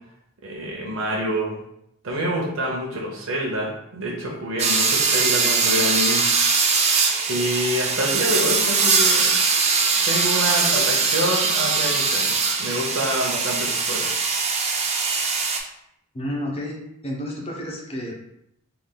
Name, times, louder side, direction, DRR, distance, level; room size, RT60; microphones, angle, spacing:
voice 1, 0.4-1.6 2.0-6.8 7.3-9.3 10.0-14.1, equal, 70° right, -2 dB, 0.7 m, -27 dB
sound 1, 4.6-15.6, right 4 dB, 30° right, 0.4 m, -21 dB
voice 2, 16.1-16.8 17.0-18.2, equal, 30° left, -2 dB, 0.8 m, -30 dB
3.3 x 2.3 x 3.8 m, 0.78 s
head